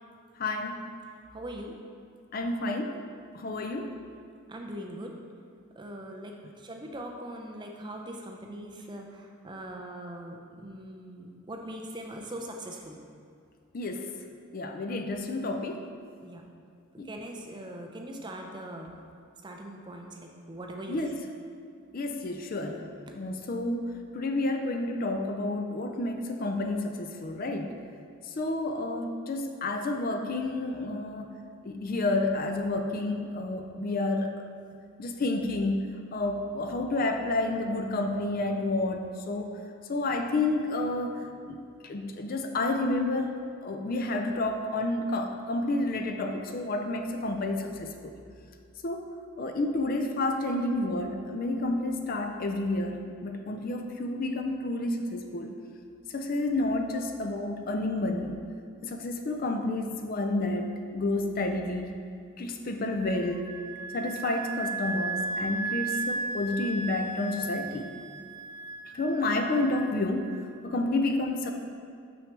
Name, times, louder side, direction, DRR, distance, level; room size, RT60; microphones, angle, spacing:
voice 1, 0.4-0.8 2.3-3.0 3.3-4.0 13.7-14.1 14.5-15.9 17.0-17.1 20.9-21.1 21.9-23.9 24.1-27.7 28.4-31.4 31.6-34.5 35.0-39.5 39.9-41.2 41.5-41.6 41.8-43.3 43.6-48.1 48.8-49.1 49.4-55.5 56.1-58.4 58.8-61.9 62.4-63.5 63.9-67.9 68.9-70.3 70.6-71.5, left 2 dB, 45° left, 5 dB, 0.4 m, -30 dB
voice 2, 1.3-1.8 4.5-5.2 5.8-13.0 16.2-16.5 17.0-18.9 19.4-21.1 23.1-23.2, right 1 dB, 20° right, 2 dB, 0.5 m, -41 dB
Wind instrument woodwind instrument, 63.0-70.5, right 3 dB, 90° right, 0.5 m, -36 dB
6.2 x 6.0 x 3.3 m, 2.3 s
head